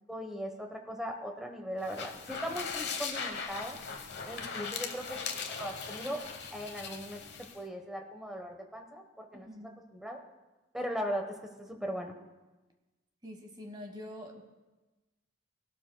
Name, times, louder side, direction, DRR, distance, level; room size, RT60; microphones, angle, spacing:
voice 1, 0.1-3.8 4.2-6.2 6.5-7.2 7.5-9.5 9.9-10.2 10.7-12.1, equal, ahead, 3 dB, 1.1 m, -39 dB
sound 1, 1.8-7.6, left 5 dB, 60° left, 1.1 m, -39 dB
voice 2, 4.4-4.8 9.3-9.7 13.2-14.4, left 1 dB, 20° right, 3 dB, 1.4 m, -46 dB
20.5 x 12.5 x 2.3 m, 1.2 s
head